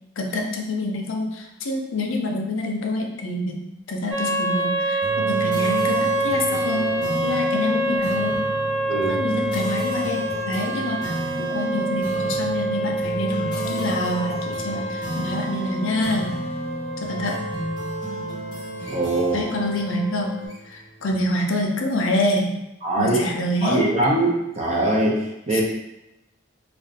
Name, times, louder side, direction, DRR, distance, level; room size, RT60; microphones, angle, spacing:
voice 1, 0.2-8.4 8.9-16.4 17.0-17.4 19.3-20.4 20.7-22.6 23.0-23.8 25.5-25.6, left 1 dB, 75° left, 2 dB, 0.5 m, -26 dB
sound 1, 4.1-20.5, right 2 dB, 90° right, 0.8 m, -27 dB
sound 2, 5.0-20.9, right 1 dB, 20° left, 0.8 m, -33 dB
voice 2, 18.9-19.4 22.8-23.3 23.6-24.3 24.6-25.6, right 2 dB, 30° right, -3 dB, 0.6 m, -22 dB
2.5 x 2.2 x 3.8 m, 0.93 s
head